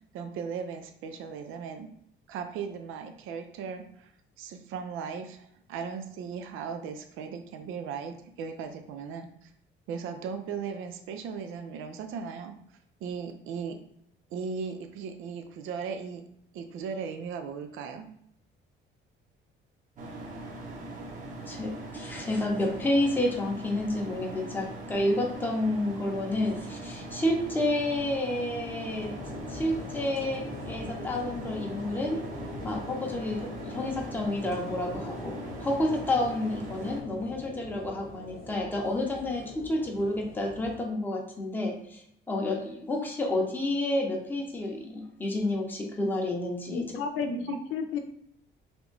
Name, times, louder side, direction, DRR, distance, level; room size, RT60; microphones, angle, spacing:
voice 1, 0.1-1.9 2.3-4.1 4.4-9.5 9.9-12.5 13.0-13.7 14.3-16.2 16.5-18.1 47.5-47.6, right 6 dB, 85° right, 6 dB, 0.5 m, -37 dB
sound 1, 20.0-37.0, right 1 dB, 40° right, 0.8 m, -41 dB
voice 2, 21.5-29.1 29.5-32.2 32.6-46.8, left 1 dB, 10° left, -1 dB, 0.7 m, -30 dB
sound 2, 28.9-40.8, left 2 dB, 50° left, 0.7 m, -43 dB
voice 3, 46.7-48.0, left 4 dB, 90° left, 6 dB, 0.6 m, -32 dB
3.5 x 2.9 x 3.9 m, 0.69 s
cardioid pair, 170°, 20 cm